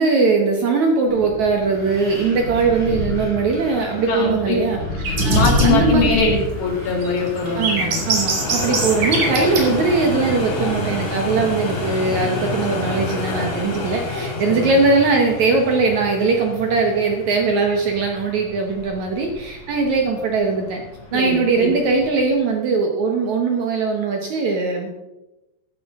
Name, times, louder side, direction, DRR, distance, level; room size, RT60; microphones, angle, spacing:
voice 1, 0.0-4.8 5.1-6.1 7.6-20.8 21.1-24.9, right 4 dB, 70° right, 2 dB, 1.8 m, -20 dB
Wind, 1.1-11.0, left 1 dB, 35° left, 5.3 m, -27 dB
sound 1, 4.0-22.3, left 2 dB, 65° left, 5.3 m, -30 dB
sound 2, 5.0-5.7 6.8-9.7 11.7-12.0, right 3 dB, 50° right, 3.6 m, -23 dB
voice 2, 5.3-8.0 14.2-14.8 21.1-21.8, left 4 dB, 90° left, 0 dB, 4.5 m, -22 dB
14.0 x 11.5 x 3.6 m, 1.0 s
omnidirectional pair, 4.7 m